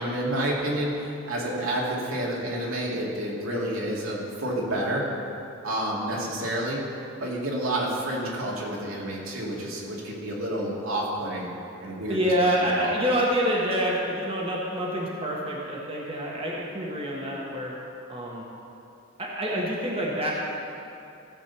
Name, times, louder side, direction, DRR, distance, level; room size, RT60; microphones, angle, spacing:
voice 1, 0.0-5.0 5.6-6.8 7.2-11.5 11.8-12.2 12.6-12.9, right 1 dB, 85° right, -4 dB, 2.5 m, -29 dB
voice 2, 12.1-17.7 18.1-18.4 19.2-20.3, equal, 30° right, -4 dB, 1.4 m, -27 dB
15.0 x 5.2 x 7.0 m, 2.7 s
head